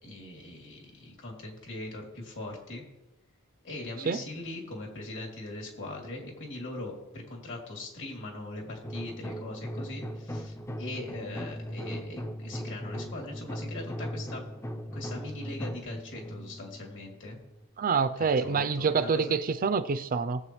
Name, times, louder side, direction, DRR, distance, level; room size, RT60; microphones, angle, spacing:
voice 1, 0.0-2.8 3.6-14.6 14.9-17.4 18.2-19.4, left 2 dB, 60° left, 0 dB, 3.0 m, -40 dB
sound 1, 8.8-17.6, equal, 10° left, 0.5 m, -38 dB
voice 2, 17.8-20.4, right 5 dB, 40° right, 11 dB, 0.5 m, -26 dB
20.0 x 7.8 x 3.2 m, 0.97 s
head